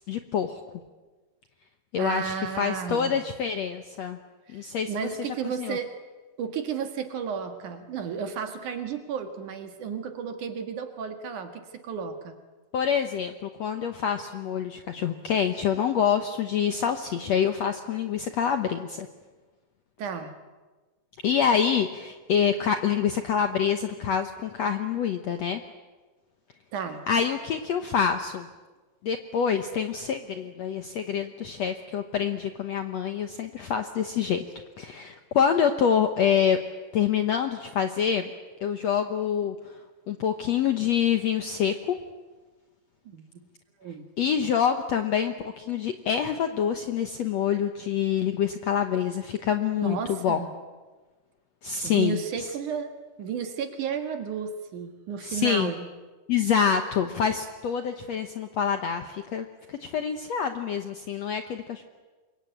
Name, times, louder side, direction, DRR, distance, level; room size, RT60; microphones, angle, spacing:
voice 1, 0.1-0.6 1.9-4.2 4.5-4.9 5.3-5.8 12.7-19.1 21.2-25.6 27.1-28.5 29.0-34.4 34.8-36.6 36.9-38.3 38.6-39.7 40.1-42.0 44.2-50.4 51.6-52.5 55.2-55.7 56.3-61.8, left 8 dB, 65° left, 7 dB, 1.7 m, -26 dB
voice 2, 2.0-3.2 4.5-5.9 6.4-12.4 20.0-20.3 26.7-27.0 43.1-43.2 43.8-44.1 49.8-50.5 51.8-52.9 53.2-55.9, right 7 dB, 60° right, 7 dB, 3.0 m, -33 dB
27.0 x 23.0 x 9.0 m, 1.3 s
omnidirectional pair, 4.3 m